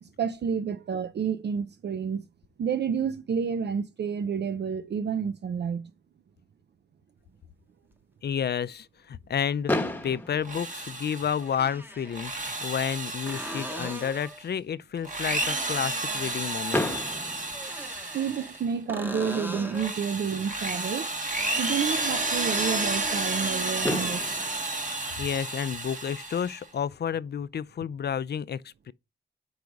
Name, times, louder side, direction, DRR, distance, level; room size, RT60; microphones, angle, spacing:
voice 1, 0.0-2.2 2.6-5.9 18.1-21.1 21.6-24.2, right 7 dB, 65° right, 0.4 m, -30 dB
sound 1, 7.9-8.0 10.1-10.2 11.4-12.2 13.3-14.4 17.5-18.6 18.9-19.9 23.6-23.7, equal, 10° right, 1.0 m, -39 dB
voice 2, 8.2-16.9 25.2-28.9, left 8 dB, 60° left, 0.4 m, -31 dB
Fireworks, 9.7-11.7 12.5-12.6 12.8-13.0 13.3-13.4 16.7-18.5 20.2-20.3 23.4-23.5 23.8-26.1, left 1 dB, 10° left, 1.0 m, -33 dB
Drill, 10.4-11.5 12.0-14.4 15.0-18.7 19.2-26.6, right 2 dB, 45° right, 1.5 m, -31 dB
4.8 x 4.7 x 5.1 m
cardioid pair, 70°, 19 cm